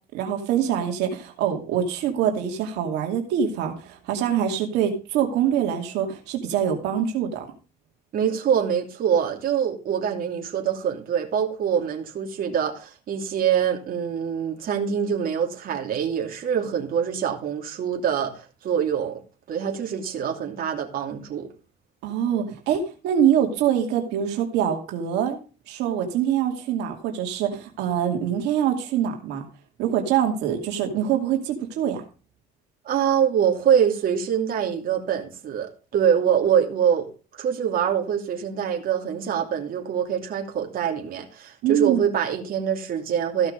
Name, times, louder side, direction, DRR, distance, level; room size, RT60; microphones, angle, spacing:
voice 1, 0.1-7.5 22.0-25.4 25.7-29.4 29.8-32.0 41.6-42.0, right 9 dB, 85° right, 2.5 m, -24 dB
voice 2, 8.1-19.2 19.5-21.5 32.8-43.5, right 8 dB, 60° right, 2.8 m, -24 dB
15.0 x 6.0 x 5.2 m
cardioid pair, 110°, 17 cm